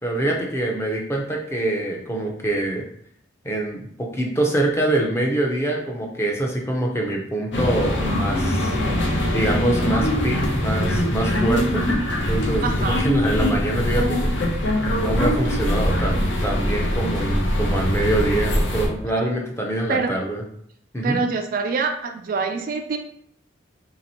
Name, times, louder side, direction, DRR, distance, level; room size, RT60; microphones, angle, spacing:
voice 1, 0.0-2.8 3.4-8.7 9.3-11.9 12.3-14.4 14.8-20.4 20.9-21.2, right 1 dB, 15° left, -1 dB, 0.6 m, -25 dB
sound 1, 7.5-18.9, left 1 dB, 70° left, 0.8 m, -22 dB
voice 2, 12.6-13.0 19.9-20.1 21.0-23.0, right 4 dB, 45° right, 5 dB, 0.3 m, -25 dB
3.0 x 2.9 x 4.2 m, 0.67 s
head